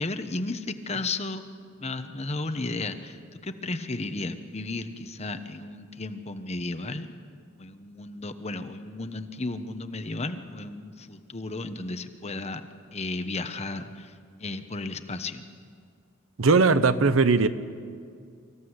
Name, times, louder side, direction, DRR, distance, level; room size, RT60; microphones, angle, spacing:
voice 1, 0.0-1.4 1.8-3.2 3.4-7.2 7.6-12.6 12.9-14.1 14.4-15.5, left 2 dB, 30° left, 9 dB, 1.0 m, -34 dB
voice 2, 16.4-17.5, right 4 dB, 70° right, 12 dB, 0.8 m, -19 dB
25.0 x 15.0 x 8.0 m, 2.2 s
head